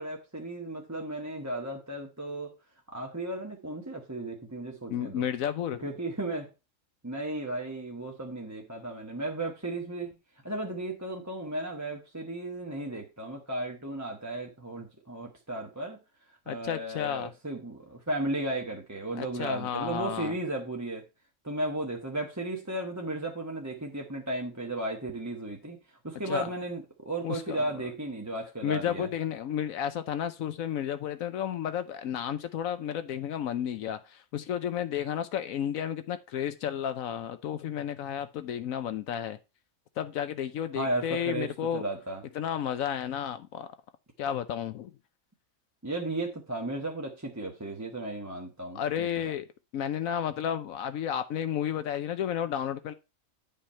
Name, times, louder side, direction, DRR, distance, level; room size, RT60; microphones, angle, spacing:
voice 1, 0.0-2.6 2.9-5.3 5.8-6.5 7.0-10.1 10.4-16.0 16.5-21.0 21.4-29.1 40.7-42.2 45.8-49.3, right 2 dB, 15° right, 1.1 m, -35 dB
voice 2, 4.9-5.8 16.5-17.3 19.2-20.3 26.3-26.5 27.2-27.6 28.6-39.4 40.0-41.8 42.3-43.7 44.2-44.9 48.7-49.5 49.7-52.9, left 9 dB, 75° left, 1.1 m, -32 dB
10.0 x 5.5 x 4.3 m
omnidirectional pair, 1.5 m